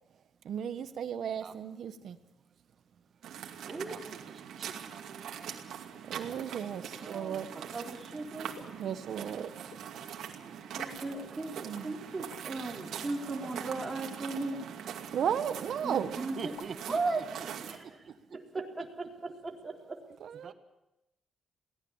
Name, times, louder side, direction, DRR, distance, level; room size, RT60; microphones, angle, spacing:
voice 1, 0.4-2.2 6.1-7.5 8.7-9.7 11.6-12.0 15.1-16.1 20.2-20.5, right 8 dB, 65° right, 10 dB, 1.3 m, -35 dB
sound 1, 3.2-17.8, right 8 dB, 90° right, 2.4 m, -43 dB
voice 2, 4.3-5.7 9.7-10.6 16.4-17.5 17.8-18.6 20.4-20.5, right 6 dB, 45° right, 8 dB, 1.7 m, -47 dB
voice 3, 6.7-8.6 10.7-14.6 15.8-16.5 16.9-17.2 17.7-17.8 18.5-20.0, right 3 dB, 20° right, -1 dB, 4.0 m, -37 dB
sound 2, 8.5-8.9 9.7-9.9 10.8-11.3 11.7-11.9 12.3-12.4 13.4-13.7 14.5-14.7 15.2-15.8 16.1-16.2 16.4-16.9, left 6 dB, 70° left, 2.0 m, -53 dB
23.0 x 17.5 x 7.3 m, 0.92 s
cardioid pair, 150°, 0 cm